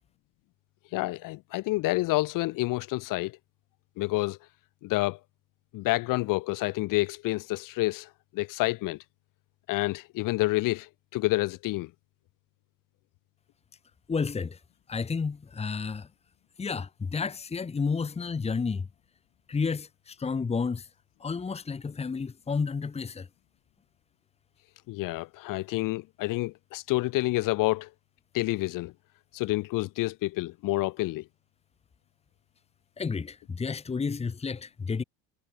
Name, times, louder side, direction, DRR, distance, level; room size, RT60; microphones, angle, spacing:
voice 1, 0.9-3.4 4.0-4.4 4.8-5.2 5.7-9.0 9.7-11.9 24.9-27.9 28.3-28.9 29.3-31.2, left 20 dB, 55° left, 3.4 m, -28 dB
voice 2, 14.1-14.6 14.9-16.1 16.6-18.9 19.5-20.9 21.2-23.3 33.0-35.0, left 5 dB, 15° left, 2.2 m, -31 dB
supercardioid pair, 125°, 38 cm